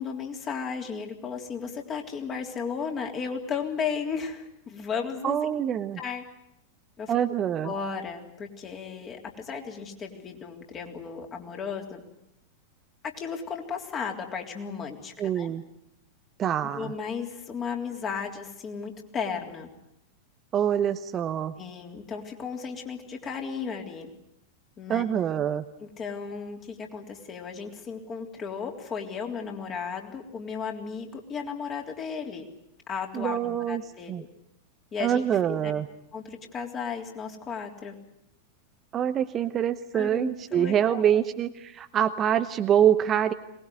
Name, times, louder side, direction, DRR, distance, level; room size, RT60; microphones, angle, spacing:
voice 1, 0.0-5.5 6.0-6.2 7.0-7.4 7.6-12.0 13.0-15.5 16.6-19.7 21.6-24.1 24.8-25.0 25.8-32.5 32.9-34.3 34.9-35.7 36.1-38.0 39.9-41.0, left 6 dB, 25° left, 2 dB, 3.5 m, -35 dB
voice 2, 5.2-6.0 7.1-7.7 15.2-15.6 16.4-16.9 20.5-21.5 24.9-25.6 33.1-33.8 34.1-34.2 35.0-35.9 38.9-43.3, right 9 dB, 30° right, 9 dB, 0.9 m, -25 dB
23.0 x 20.0 x 9.5 m, 0.80 s
figure-of-eight pair, 90°, 0 cm